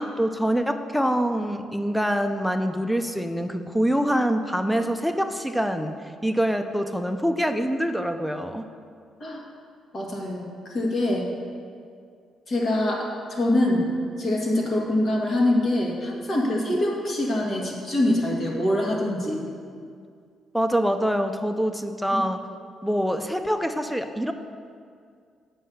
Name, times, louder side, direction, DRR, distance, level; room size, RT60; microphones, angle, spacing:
voice 1, 0.0-5.9 6.2-8.6 16.5-16.8 19.2-19.7 20.5-22.4 22.8-24.3, equal, ahead, 7 dB, 0.6 m, -25 dB
voice 2, 9.9-11.3 12.5-13.9 14.2-19.4 22.1-22.2, left 1 dB, 50° left, -2 dB, 1.9 m, -24 dB
7.6 x 5.6 x 6.3 m, 2.2 s
cardioid pair, 90°, 0 cm